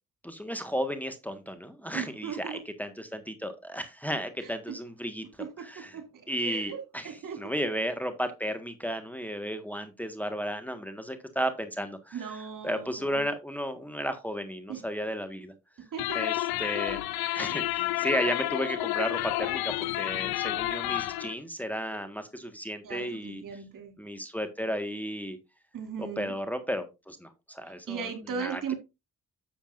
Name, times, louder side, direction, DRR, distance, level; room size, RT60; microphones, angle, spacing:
voice 1, 0.2-5.2 5.6-5.9 6.3-7.1 7.4-12.4 12.6-15.5 16.1-17.0 17.3-23.4 24.0-25.4 26.0-28.1 28.4-28.7, equal, 5° left, 1.5 m, -34 dB
voice 2, 1.9-2.6 4.4-4.8 5.4-6.8 7.0-7.5 12.1-13.2 14.7-14.9 15.9-16.2 17.1-17.6 22.8-23.9 25.7-26.3 27.9-28.7, right 7 dB, 65° right, 2.6 m, -38 dB
sound 1, 16.0-21.3, left 17 dB, 90° left, 0.6 m, -30 dB
10.0 x 7.1 x 2.5 m
supercardioid pair, 60°, 35 cm